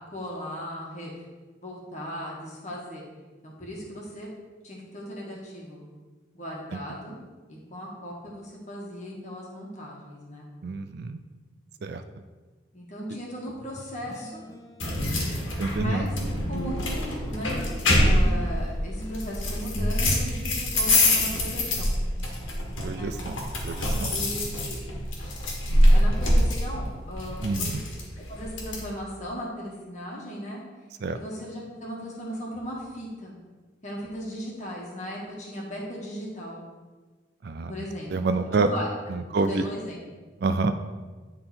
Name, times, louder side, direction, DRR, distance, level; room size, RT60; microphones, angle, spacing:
voice 1, 0.1-1.1 1.6-3.0 3.4-4.3 4.6-5.9 6.3-7.2 7.5-10.5 12.7-14.5 15.8-16.1 16.4-17.6 18.0-22.0 22.9-23.1 24.1-24.8 25.8-27.9 28.1-30.6 31.1-33.3 33.8-36.7 37.7-38.9 39.3-40.0, equal, 35° left, -3 dB, 1.6 m, -37 dB
voice 2, 10.6-11.2 11.8-12.0 15.6-16.1 22.8-24.2 27.4-27.8 31.0-31.2 37.4-37.7 38.1-38.7 39.1-39.6 40.4-40.7, right 3 dB, 55° right, 9 dB, 0.4 m, -28 dB
sound 1, 13.6-20.0, left 1 dB, 20° left, 0.5 m, -38 dB
sound 2, 14.8-28.8, left 1 dB, 80° left, 1.6 m, -25 dB
9.9 x 3.7 x 4.3 m, 1.3 s
head